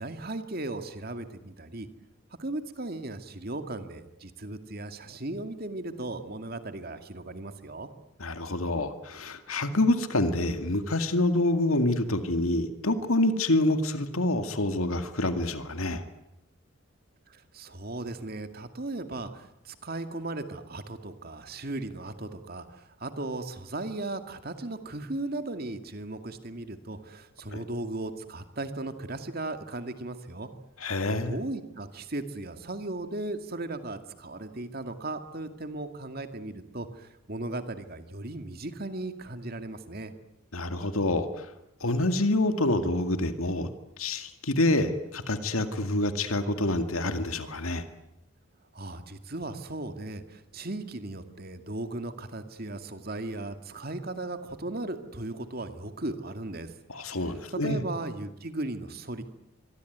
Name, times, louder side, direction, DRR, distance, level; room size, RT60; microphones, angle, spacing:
voice 1, 0.0-1.9 2.4-7.9 17.3-30.5 31.3-40.1 48.7-56.7 57.2-59.2, right 2 dB, 45° right, 8 dB, 2.2 m, -37 dB
voice 2, 8.2-16.0 27.5-27.6 30.8-31.4 40.5-41.3 41.8-43.7 44.0-47.8 56.9-57.8, left 2 dB, 85° left, 8 dB, 2.1 m, -27 dB
25.5 x 22.5 x 9.4 m, 0.86 s
head